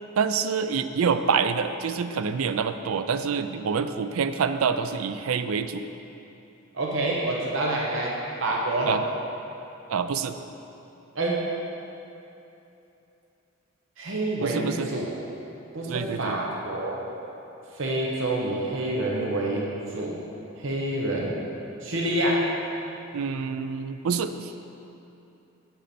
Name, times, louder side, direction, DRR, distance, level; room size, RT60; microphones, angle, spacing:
voice 1, 0.2-5.8 8.9-9.0 9.9-10.3 14.4-14.9 15.9-16.4 23.1-24.5, right 6 dB, 90° right, 10 dB, 0.4 m, -26 dB
voice 2, 6.7-8.9 11.1-11.5 14.0-15.1 15.7-17.0 17.7-20.2 20.6-21.4 21.8-22.5, right 1 dB, 65° right, -2 dB, 0.9 m, -27 dB
8.1 x 7.7 x 4.3 m, 2.9 s
head